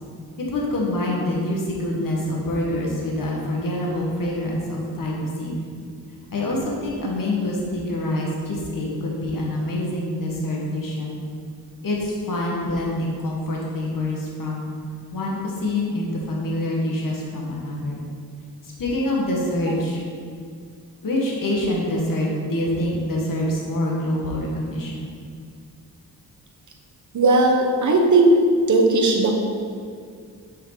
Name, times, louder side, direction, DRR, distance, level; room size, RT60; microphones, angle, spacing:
voice 1, 0.4-5.7 6.3-11.2 11.8-14.7 15.1-18.0 18.6-20.0 21.0-25.1, left 1 dB, 55° left, -3 dB, 1.6 m, -26 dB
voice 2, 27.1-28.3 28.7-29.4, right 3 dB, 50° right, 2 dB, 1.2 m, -17 dB
7.2 x 6.0 x 4.0 m, 2.2 s
cardioid pair, 80°, 38 cm